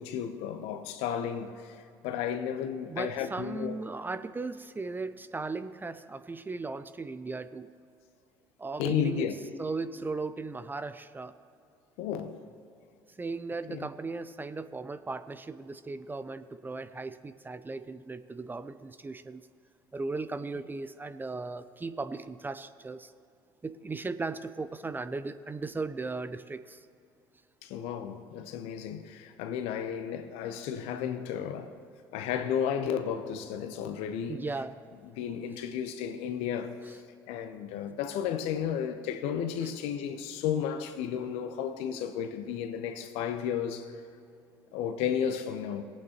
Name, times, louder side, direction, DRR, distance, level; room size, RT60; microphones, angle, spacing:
voice 1, 0.0-3.8 8.8-9.4 12.0-12.4 13.7-13.9 27.6-31.7 32.1-34.4 35.0-36.8 37.3-43.9 44.7-45.8, left 8 dB, 70° left, 0.9 m, -33 dB
voice 2, 2.9-7.7 8.6-9.3 9.6-11.3 13.2-19.5 19.9-23.1 23.6-26.8 34.3-34.8, right 3 dB, 20° right, 0.5 m, -37 dB
19.0 x 8.7 x 3.0 m
hypercardioid pair, 65°, 11 cm